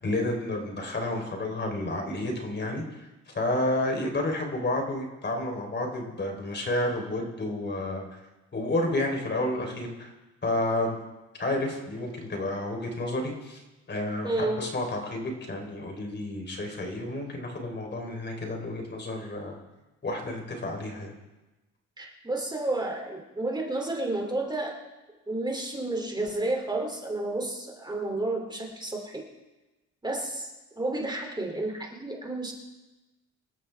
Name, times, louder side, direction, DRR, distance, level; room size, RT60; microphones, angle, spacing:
voice 1, 0.0-2.8 3.3-8.2 8.5-10.1 10.4-11.0 11.4-19.6 20.0-21.1, left 1 dB, 35° left, 2 dB, 3.6 m, -30 dB
voice 2, 14.2-14.6 22.0-24.8 25.3-29.2 30.0-30.5 30.8-32.5, right 2 dB, 15° right, 1 dB, 2.7 m, -31 dB
25.5 x 13.0 x 3.4 m, 1.1 s
cardioid pair, 90°, 30 cm